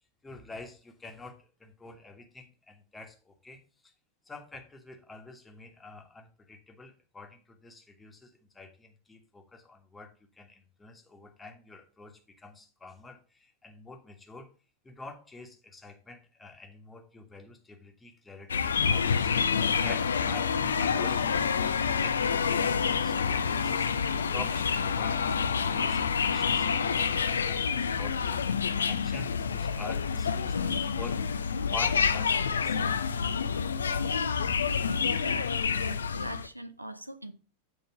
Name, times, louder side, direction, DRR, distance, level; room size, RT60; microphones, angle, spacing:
voice 1, 0.2-3.6 4.3-14.5 14.8-23.9 24.3-28.5 28.8-31.2 31.7-32.8, left 3 dB, 10° left, 1.4 m, -47 dB
sound 1, 18.5-36.5, left 6 dB, 70° left, 0.4 m, -28 dB
voice 2, 35.1-37.3, right 1 dB, 85° right, 0.5 m, -42 dB
7.9 x 3.8 x 5.7 m
figure-of-eight pair, 90°, 0 cm